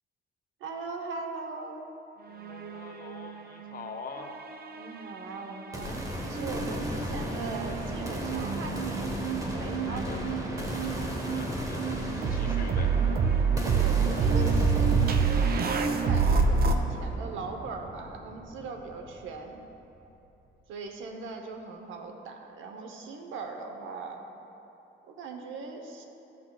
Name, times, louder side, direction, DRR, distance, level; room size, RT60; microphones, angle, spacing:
voice 1, 0.6-1.8 4.7-9.1 9.5-10.5 13.7-19.6 20.7-24.2 25.0-26.1, right 4 dB, 75° right, 4 dB, 0.8 m, -39 dB
voice 2, 2.3-4.3 9.8-10.2 10.5-10.7 11.2-12.9, left 5 dB, 45° left, 4 dB, 0.8 m, -44 dB
sound 1, 2.3-3.9 4.2-5.6 6.3-16.8, right 5 dB, 50° right, 0.5 m, -28 dB
sound 2, 5.7-19.7, equal, 15° right, 1.0 m, -36 dB
13.0 x 5.9 x 2.3 m, 3.0 s
cardioid pair, 90°, 20 cm